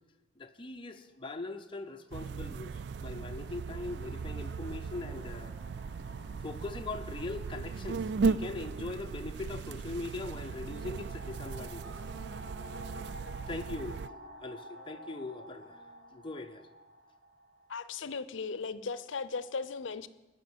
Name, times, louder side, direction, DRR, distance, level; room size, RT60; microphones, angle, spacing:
voice 1, 0.4-5.5 6.4-12.0 13.5-15.8 16.1-16.7, left 3 dB, 25° left, 6 dB, 0.7 m, -41 dB
sound 1, 0.9-1.1 2.1-18.7, equal, 85° right, 3.2 m, -52 dB
sound 2, 2.1-14.1, right 4 dB, 60° right, 0.3 m, -37 dB
Wind instrument woodwind instrument, 4.1-9.9 10.7-16.5, equal, 5° left, 4.9 m, -61 dB
voice 2, 17.7-20.1, left 4 dB, 85° left, 15 dB, 0.6 m, -37 dB
12.5 x 6.5 x 9.5 m, 1.1 s
head